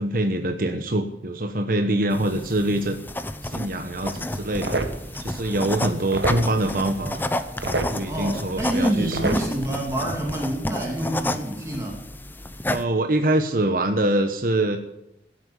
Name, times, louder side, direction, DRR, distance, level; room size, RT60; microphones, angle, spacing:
voice 1, 0.0-3.0 3.4-4.8 5.2-7.3 7.7-9.3 12.7-14.8, right 1 dB, 50° right, 6 dB, 1.2 m, -24 dB
sound 1, 2.1-12.8, left 1 dB, 10° left, 0.8 m, -31 dB
sound 2, 4.0-10.0, right 2 dB, 70° right, 1.6 m, -32 dB
voice 2, 8.1-12.0, right 1 dB, 15° right, -1 dB, 2.6 m, -27 dB
16.0 x 8.8 x 10.0 m, 0.85 s
head